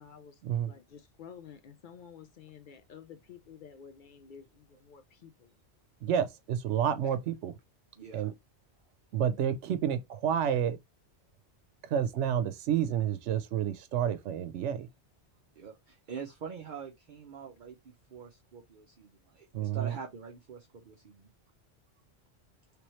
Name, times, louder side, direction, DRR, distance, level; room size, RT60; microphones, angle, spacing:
voice 1, 0.0-5.5 10.5-10.6, left 7 dB, 60° left, 0.6 m, -51 dB
voice 2, 6.0-7.6 8.1-8.3 9.1-10.8 11.8-14.9 19.5-20.0, right 9 dB, 85° right, 0.9 m, -30 dB
voice 3, 8.0-8.3 15.6-21.3, right 6 dB, 50° right, 0.7 m, -45 dB
3.4 x 3.0 x 3.0 m
omnidirectional pair, 1.2 m